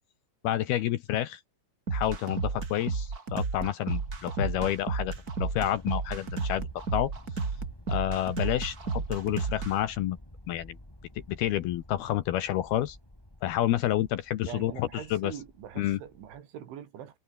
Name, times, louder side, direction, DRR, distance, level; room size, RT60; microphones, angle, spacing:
voice 1, 0.4-1.4 1.9-5.1 5.4-7.1 7.9-10.2 10.5-10.8 11.3-13.0 13.4-15.4 15.8-16.0, left 13 dB, 75° left, 2.6 m, -29 dB
sound 1, 1.9-9.7, right 4 dB, 30° right, 2.0 m, -32 dB
sound 2, 4.0-16.4, left 1 dB, 5° left, 3.8 m, -51 dB
voice 2, 14.4-17.2, right 10 dB, 80° right, 5.2 m, -43 dB
omnidirectional pair, 5.4 m